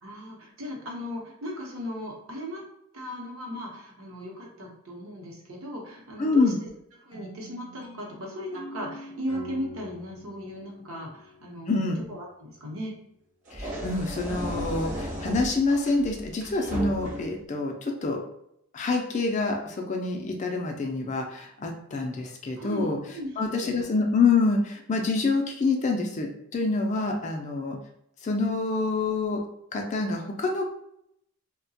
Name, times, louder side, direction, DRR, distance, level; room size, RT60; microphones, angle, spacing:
voice 1, 0.0-2.6 2.9-6.7 7.0-12.9 22.6-23.9, equal, 65° right, -1 dB, 0.8 m, -37 dB
voice 2, 6.2-6.6 11.7-12.0 13.5-18.2 18.7-23.0 23.4-27.8 28.2-29.4 29.7-30.6, left 3 dB, 35° left, 2 dB, 0.3 m, -26 dB
sound 1, 7.1-12.0, left 1 dB, 85° left, 0.5 m, -45 dB
sound 2, 13.4-17.4, equal, 35° right, 0.7 m, -34 dB
2.8 x 2.1 x 2.7 m, 0.76 s
head